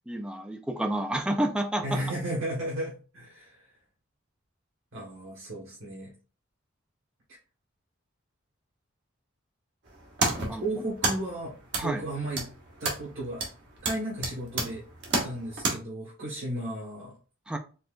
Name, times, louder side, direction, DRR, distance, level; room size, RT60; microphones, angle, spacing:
voice 1, 0.1-2.0 10.5-10.6 11.8-12.0 17.5-17.6, right 1 dB, 5° right, 5 dB, 0.3 m, -29 dB
voice 2, 1.8-3.6 4.9-6.1 10.6-12.5 12.8-13.4 13.8-14.8 15.2-17.1, right 1 dB, 75° right, -6 dB, 1.3 m, -34 dB
sound 1, 9.8-15.7, right 3 dB, 55° right, 1.0 m, -32 dB
4.3 x 2.3 x 2.5 m, 0.35 s
head